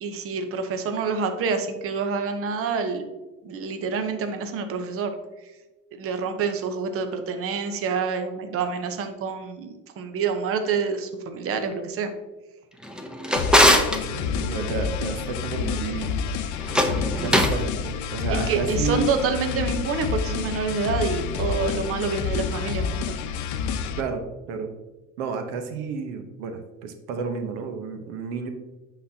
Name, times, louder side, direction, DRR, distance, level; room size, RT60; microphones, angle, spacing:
voice 1, 0.0-3.0 3.4-5.1 5.4-5.5 5.9-12.1 18.3-23.1, right 5 dB, 40° right, 7 dB, 0.9 m, -27 dB
Drawer open or close, 12.8-14.0 16.6-17.6, equal, ahead, 0.7 m, -20 dB
sound 1, 13.3-24.0, left 6 dB, 55° left, 0.7 m, -28 dB
voice 2, 13.7-16.2 17.2-19.1 24.0-24.2 24.5-24.7 25.2-28.5, right 5 dB, 85° right, 6 dB, 0.9 m, -31 dB
10.0 x 4.0 x 2.7 m, 1.1 s
supercardioid pair, 110°, 35 cm